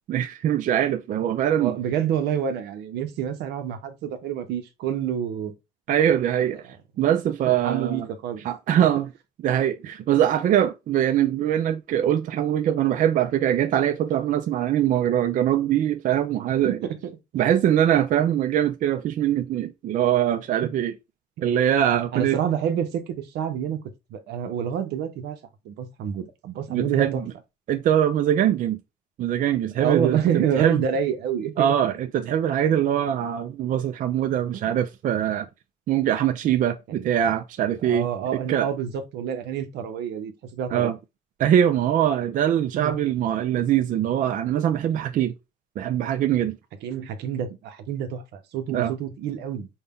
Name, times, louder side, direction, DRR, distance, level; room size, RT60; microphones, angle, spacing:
voice 1, 0.1-1.8 5.9-6.6 7.0-8.1 8.4-9.1 9.4-16.9 17.3-20.9 21.4-22.4 26.7-27.2 27.7-28.8 29.2-30.8 31.6-35.5 35.9-38.1 38.5-38.7 40.7-41.0 41.4-45.3 45.8-46.6 48.7-48.9, right 10 dB, 50° right, 0.5 m, -22 dB
voice 2, 1.6-5.5 7.6-8.5 16.6-17.1 22.1-25.4 25.6-27.2 29.7-31.7 34.5-34.8 36.9-37.1 37.8-40.9 42.7-42.9 46.8-49.7, right 8 dB, 80° right, 0.8 m, -28 dB
5.4 x 2.3 x 3.5 m
cardioid pair, 110°, 17 cm